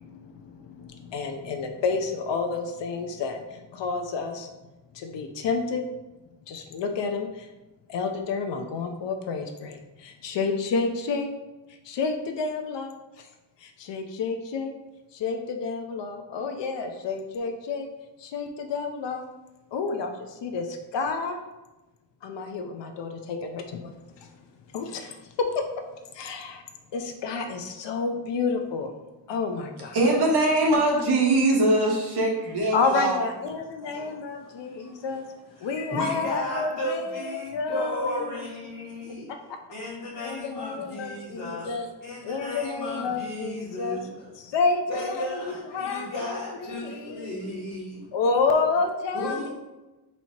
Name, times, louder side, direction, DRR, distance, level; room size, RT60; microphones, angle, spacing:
voice 1, 0.0-4.5 4.9-5.8 6.5-7.5 7.9-11.3 11.8-13.3 13.6-14.7 15.1-17.9 18.2-19.2 19.7-21.4 22.2-24.0 24.2-24.3 24.7-25.2 25.5-25.6 26.1-26.6 26.9-28.9 29.3-30.0 32.7-35.2 35.6-39.1 39.5-39.6 40.2-41.9 42.2-44.0 44.4-47.6 48.1-49.5, left 4 dB, 85° left, 5 dB, 0.6 m, -30 dB
voice 2, 29.9-33.2, right 2 dB, 65° right, -2 dB, 1.3 m, -22 dB
voice 3, 33.8-35.1 35.6-39.3 39.7-41.7 42.0-44.3 44.9-48.0 49.1-49.5, left 1 dB, 50° left, -10 dB, 1.5 m, -34 dB
4.3 x 2.7 x 4.3 m, 1.1 s
wide cardioid pair, 120°, 42 cm